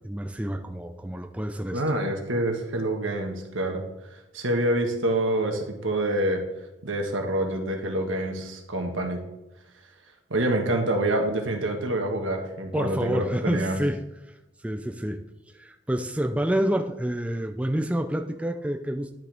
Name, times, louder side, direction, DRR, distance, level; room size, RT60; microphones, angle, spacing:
voice 1, 0.0-1.8 12.7-14.0 14.6-15.2 15.5-19.1, right 1 dB, 5° right, 6 dB, 0.4 m, -28 dB
voice 2, 1.7-3.8 4.3-6.4 6.8-9.2 10.3-13.8, right 1 dB, 90° right, 3 dB, 1.5 m, -26 dB
10.5 x 6.3 x 3.4 m, 0.98 s
head